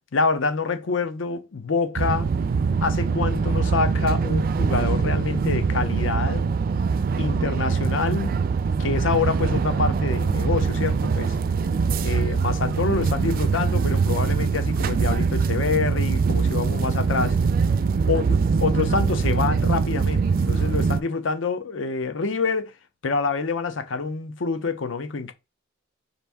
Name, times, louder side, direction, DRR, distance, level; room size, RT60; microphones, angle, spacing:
voice 1, 0.1-2.3 2.8-6.5 7.2-8.4 8.8-11.4 12.0-17.4 18.1-22.7 23.0-25.3, left 4 dB, 70° left, 0.6 m, -26 dB
sound 1, 1.9-21.0, right 5 dB, 45° right, 0.3 m, -23 dB
5.7 x 2.5 x 3.4 m
head